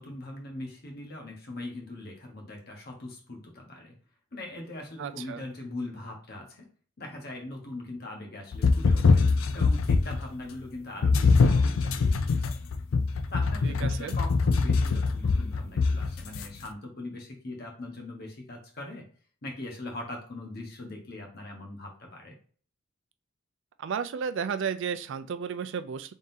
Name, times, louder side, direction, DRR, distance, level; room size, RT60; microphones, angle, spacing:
voice 1, 0.0-4.0 4.3-6.7 7.0-9.3 9.5-12.6 13.3-19.1 19.4-22.3, left 2 dB, 50° left, 1 dB, 1.2 m, -41 dB
voice 2, 5.0-5.4 13.6-14.2 23.8-26.1, right 6 dB, 65° right, 11 dB, 0.4 m, -33 dB
sound 1, 8.5-10.3 11.0-16.4, left 4 dB, 80° left, 0.4 m, -23 dB
3.8 x 3.6 x 2.7 m, 0.43 s
head